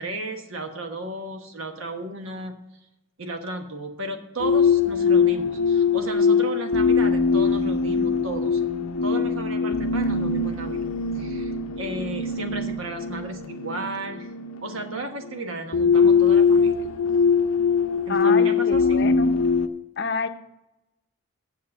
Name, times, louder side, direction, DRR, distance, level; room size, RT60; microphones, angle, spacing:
voice 1, 0.0-2.5 3.2-8.6 9.0-10.9 11.1-14.3 14.6-16.7 18.1-19.0, right 2 dB, 70° right, 6 dB, 1.3 m, -34 dB
sound 1, 4.4-19.7, left 5 dB, 90° left, 0.7 m, -22 dB
voice 2, 18.1-19.3 20.0-20.3, left 4 dB, 50° left, 9 dB, 0.6 m, -29 dB
7.5 x 7.1 x 6.9 m, 0.93 s
head